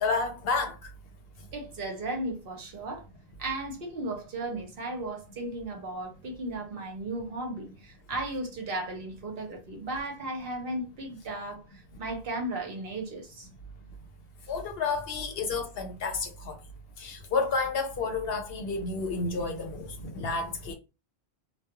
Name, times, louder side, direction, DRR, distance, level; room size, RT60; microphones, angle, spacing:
voice 1, 0.0-0.9 14.5-16.6 17.0-20.7, left 4 dB, 65° left, 0.8 m, -30 dB
voice 2, 1.5-3.0 3.4-11.6 12.0-13.5, right 2 dB, 60° right, 0.9 m, -35 dB
2.3 x 2.2 x 2.8 m
omnidirectional pair, 1.1 m